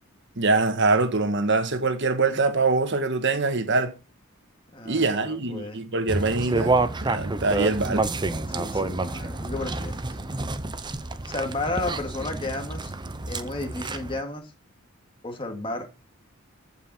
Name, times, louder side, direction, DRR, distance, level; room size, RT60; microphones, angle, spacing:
voice 1, 0.4-3.9 4.8-8.1, right 3 dB, 60° right, 1.6 m, -24 dB
voice 2, 4.7-5.8 8.5-10.2 11.2-12.9 13.3-14.5 15.2-16.0, left 2 dB, 25° left, 2.2 m, -33 dB
sound 1, 6.1-14.2, right 2 dB, 20° right, 0.8 m, -28 dB
14.5 x 5.7 x 4.4 m
head